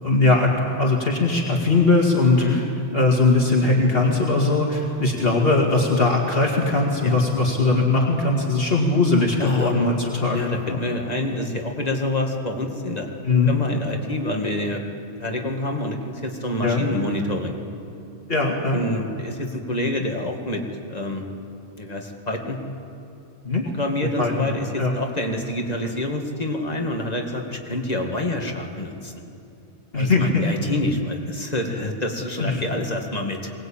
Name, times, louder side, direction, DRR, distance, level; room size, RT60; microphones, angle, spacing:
voice 1, 0.0-0.5 0.8-2.6 2.9-10.8 13.2-13.5 16.6-16.8 18.3-18.8 23.4-23.6 24.2-24.5 24.8-24.9 29.9-30.4 32.4-32.7, left 3 dB, 55° left, -1 dB, 2.5 m, -20 dB
voice 2, 9.4-10.0 10.3-13.1 13.5-14.8 15.2-17.6 18.7-20.6 20.9-21.3 21.8-22.6 23.7-29.2 29.9-33.5, left 1 dB, 35° left, 2 dB, 2.3 m, -27 dB
23.0 x 19.5 x 8.9 m, 2.7 s
omnidirectional pair, 1.2 m